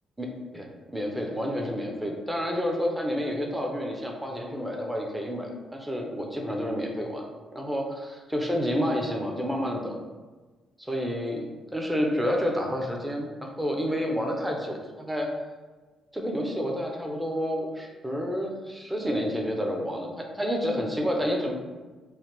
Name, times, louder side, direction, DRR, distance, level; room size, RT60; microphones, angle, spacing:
voice 1, 0.5-7.3 7.5-10.0 10.8-15.3 16.1-21.5, equal, 10° right, 1 dB, 0.5 m, -29 dB
3.2 x 2.1 x 3.0 m, 1.3 s
cardioid pair, 90°, 0 cm